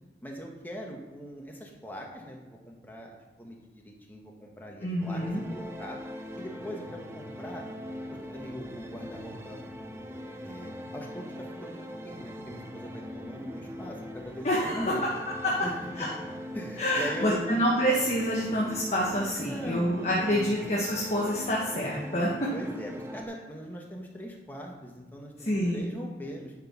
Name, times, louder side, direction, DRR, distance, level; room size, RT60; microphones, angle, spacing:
voice 1, 0.2-6.0 6.4-7.6 8.3-9.6 10.4-11.8 12.0-15.1 15.6-15.7 16.0-16.1 16.5-17.6 19.3-20.6 22.5-26.5, equal, 10° left, -1 dB, 1.3 m, -41 dB
voice 2, 4.8-5.4 14.4-14.8 15.4-15.5 16.0-16.1 16.8-22.5 25.4-25.9, equal, 40° left, -5 dB, 1.3 m, -27 dB
sound 1, 5.0-23.2, equal, 15° right, 0.6 m, -41 dB
10.5 x 4.6 x 5.9 m, 1.2 s
head